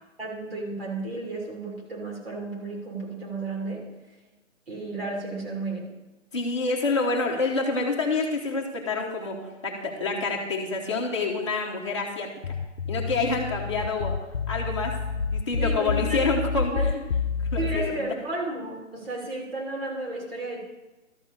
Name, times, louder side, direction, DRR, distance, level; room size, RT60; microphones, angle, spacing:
voice 1, 0.2-3.9 4.7-5.9 15.6-16.9 17.6-20.6, right 2 dB, 50° right, -2 dB, 3.1 m, -33 dB
voice 2, 6.3-12.3 12.9-14.2 14.5-15.0 15.3-17.0 17.4-18.0, left 3 dB, 20° left, -2 dB, 1.2 m, -27 dB
sound 1, 12.4-17.8, left 5 dB, 60° left, 0.9 m, -28 dB
12.5 x 4.2 x 6.7 m, 1.1 s
hypercardioid pair, 175°, 39 cm